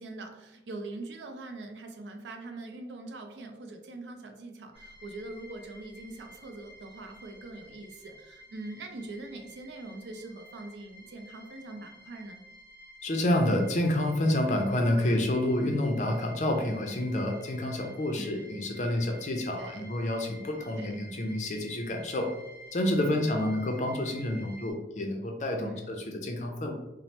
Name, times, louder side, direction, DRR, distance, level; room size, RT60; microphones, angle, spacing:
voice 1, 0.0-12.4 18.2-18.5 19.6-19.9 20.7-21.1 23.0-23.3 25.6-25.9, right 2 dB, 80° right, 0.4 m, -43 dB
sound 1, 4.7-24.7, equal, 10° left, 1.0 m, -51 dB
voice 2, 13.0-22.3 22.7-26.7, left 1 dB, 40° left, 0.4 m, -28 dB
2.8 x 2.0 x 3.1 m
head